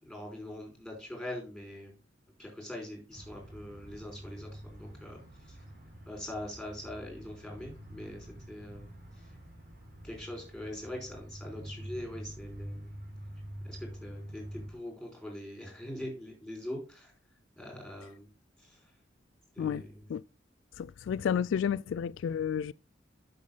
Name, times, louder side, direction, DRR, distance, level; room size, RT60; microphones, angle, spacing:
voice 1, 0.0-1.9 2.4-5.6 6.1-8.9 9.2-9.3 10.0-12.9 13.6-17.1 17.6-18.3 18.6-18.8 19.5-19.9, left 1 dB, ahead, 4.9 m, -43 dB
sound 1, 3.1-14.7, equal, 55° right, 4.6 m, -46 dB
voice 2, 20.8-22.7, left 8 dB, 85° left, 0.3 m, -31 dB
8.5 x 6.8 x 3.9 m
head